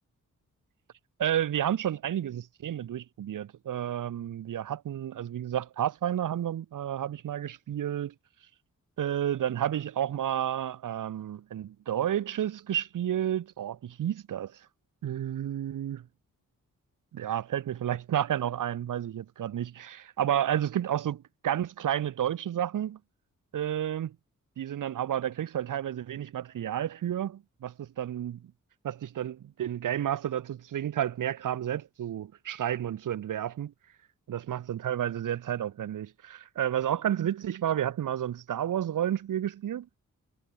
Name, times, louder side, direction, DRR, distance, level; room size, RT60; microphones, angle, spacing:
voice 1, 1.2-8.1 9.0-14.6 15.0-16.1 17.1-23.0 23.5-24.2 24.6-28.5 28.8-33.7 34.3-39.9, right 10 dB, 75° right, 1.1 m, -31 dB
cardioid pair, 65°, 32 cm